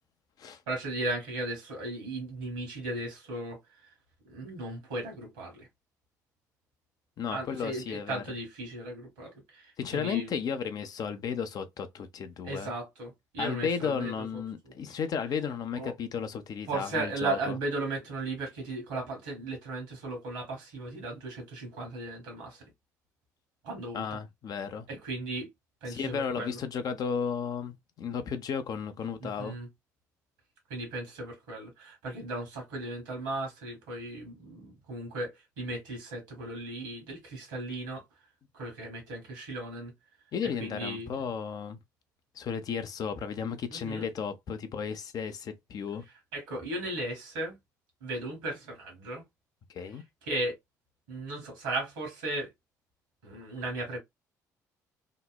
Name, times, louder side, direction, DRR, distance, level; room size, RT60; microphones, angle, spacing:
voice 1, 0.7-3.6 4.3-5.7 7.3-10.3 12.4-14.3 14.6-14.7 15.8-15.9 16.7-22.7 23.6-24.1 24.9-25.5 25.8-26.6 29.2-29.7 30.7-38.0 38.5-39.9 40.6-41.3 43.7-44.1 46.3-47.6 48.0-49.3 50.2-50.5 51.1-52.5 53.2-54.0, right 2 dB, 70° right, 1.3 m, -36 dB
voice 2, 7.2-8.4 9.8-12.7 13.4-17.6 23.9-24.9 25.9-29.6 40.3-41.8 42.4-46.0 49.7-50.0, left 6 dB, 45° left, 0.5 m, -34 dB
2.9 x 2.0 x 2.3 m
figure-of-eight pair, 50°, 9 cm